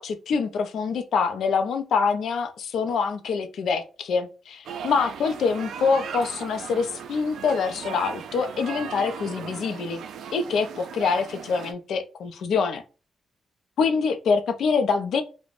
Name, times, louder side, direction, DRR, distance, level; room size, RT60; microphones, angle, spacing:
voice 1, 0.0-10.0 10.3-12.8 13.8-15.2, left 5 dB, 75° left, 0.4 m, -25 dB
sound 1, 4.6-11.7, right 7 dB, 85° right, 0.3 m, -38 dB
2.4 x 2.1 x 3.0 m
cardioid pair, 130°, 0 cm